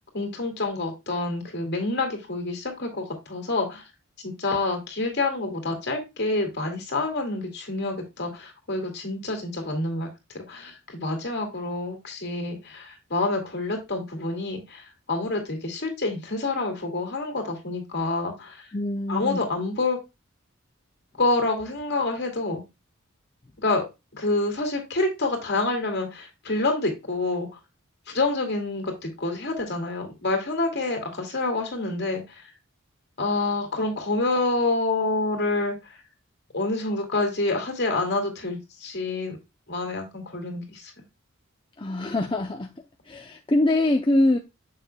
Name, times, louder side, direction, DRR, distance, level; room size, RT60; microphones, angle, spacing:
voice 1, 0.1-3.8 4.2-10.1 10.3-18.7 19.1-20.0 21.2-22.6 23.6-23.8 24.1-27.5 28.1-32.4 33.2-36.0 36.5-39.4 39.7-40.9, left 2 dB, 50° left, 2.4 m, -27 dB
voice 2, 18.7-19.5 41.8-42.7 43.0-44.4, left 1 dB, 25° left, 0.6 m, -23 dB
7.4 x 6.7 x 2.3 m
head